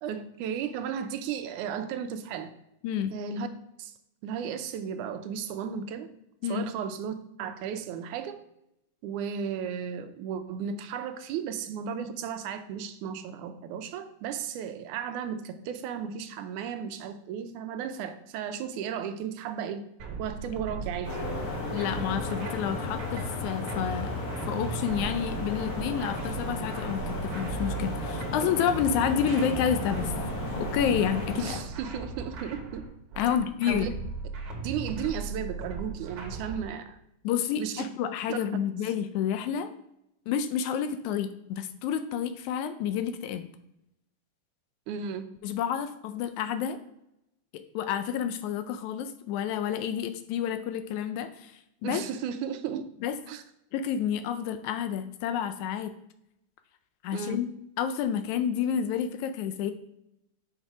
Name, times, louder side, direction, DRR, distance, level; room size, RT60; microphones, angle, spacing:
voice 1, 0.0-2.5 3.1-3.5 3.8-3.9 4.2-6.1 6.5-8.4 9.0-19.9 20.2-21.2 31.4-32.9 33.7-33.9 34.6-37.0 37.6-37.9 38.3-38.4 44.9-45.3 51.8-52.9 53.3-53.4 57.1-57.4, right 7 dB, 85° right, 9 dB, 2.1 m, -34 dB
sound 1, 20.0-36.6, right 4 dB, 55° right, 1.7 m, -38 dB
sound 2, 21.0-31.6, left 2 dB, 40° left, 3.3 m, -34 dB
voice 2, 21.7-24.2 24.5-30.1 30.5-31.6 33.2-33.9 37.2-39.7 40.3-43.5 45.4-46.8 47.5-52.0 53.0-53.2 53.7-55.9 57.0-57.5 57.8-59.7, left 8 dB, 80° left, 9 dB, 1.9 m, -29 dB
6.4 x 5.5 x 4.8 m, 0.81 s
omnidirectional pair, 3.5 m